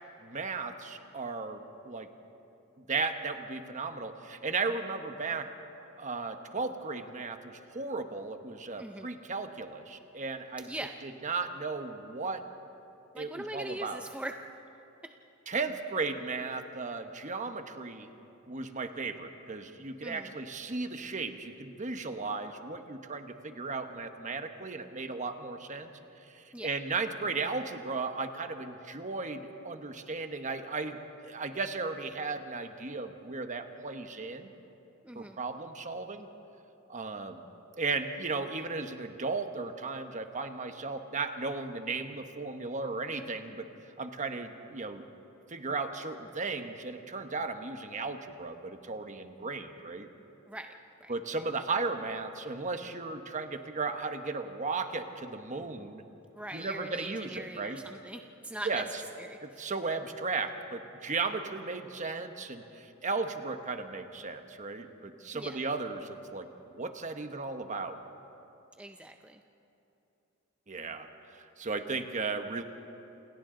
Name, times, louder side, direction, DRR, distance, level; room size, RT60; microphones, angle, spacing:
voice 1, 0.2-2.1 2.9-5.5 6.0-10.7 11.0-12.4 13.1-14.0 15.5-18.1 18.5-25.9 26.2-34.5 35.1-36.3 36.9-37.5 37.8-43.7 44.0-45.0 45.5-50.1 51.1-56.0 56.5-57.8 58.6-58.8 59.4-66.5 66.7-68.0 70.7-72.6, right 4 dB, 35° right, 7 dB, 1.2 m, -35 dB
voice 2, 10.7-11.0 13.1-14.5 15.0-15.1 20.0-20.3 26.5-26.7 35.0-35.4 50.5-50.8 51.0-51.1 56.3-58.8 59.2-59.7 65.3-65.6 68.8-69.4, right 1 dB, 5° right, 5 dB, 0.6 m, -41 dB
28.5 x 28.0 x 3.9 m, 2.9 s
head